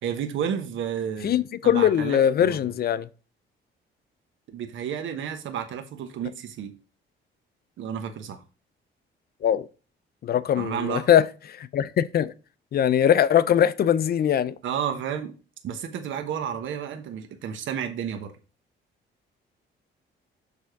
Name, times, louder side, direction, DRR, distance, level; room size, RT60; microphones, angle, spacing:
voice 1, 0.0-2.7 4.5-6.7 7.8-8.4 10.5-11.0 14.6-15.3 15.6-18.3, right 8 dB, 75° right, 1.0 m, -31 dB
voice 2, 1.2-3.1 9.4-9.7 10.2-12.3 12.7-14.5, left 9 dB, 50° left, 0.5 m, -21 dB
6.7 x 3.6 x 4.6 m
cardioid pair, 90°, 20 cm